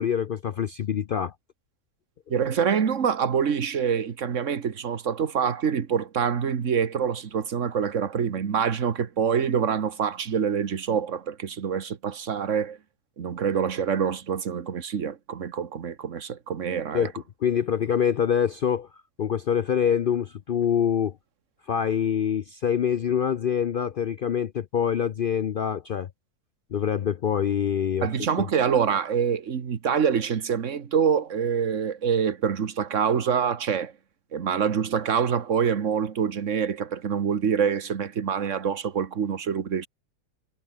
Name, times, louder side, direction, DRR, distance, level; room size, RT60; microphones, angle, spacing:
voice 1, 0.0-1.3 16.9-17.1 17.4-18.9 19.2-21.1 21.7-26.1 26.7-28.1 28.4-28.5, left 8 dB, 65° left, 0.5 m, -25 dB
voice 2, 2.3-12.8 13.2-17.1 28.0-33.9 34.3-39.9, right 7 dB, 55° right, 1.7 m, -26 dB
omnidirectional pair, 1.6 m